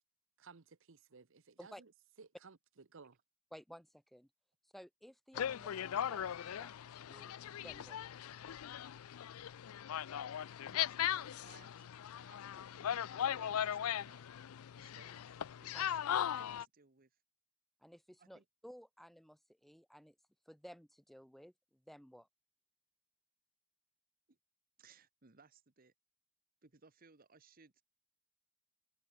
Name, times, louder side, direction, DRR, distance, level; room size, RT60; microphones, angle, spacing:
voice 1, 0.4-1.9 2.2-2.6 2.9-3.2, right 4 dB, 65° right, 0.9 m, -58 dB
voice 2, 3.5-4.3 4.7-8.0 15.7-15.8 17.8-20.1 20.5-22.3, equal, ahead, 0.8 m, -56 dB
sound 1, 5.3-16.6, left 10 dB, 85° left, 0.4 m, -39 dB
voice 3, 10.7-14.4 14.8-17.1 18.2-18.4 24.3-24.4 24.8-25.9 26.6-27.8, right 4 dB, 45° right, 1.3 m, -64 dB
head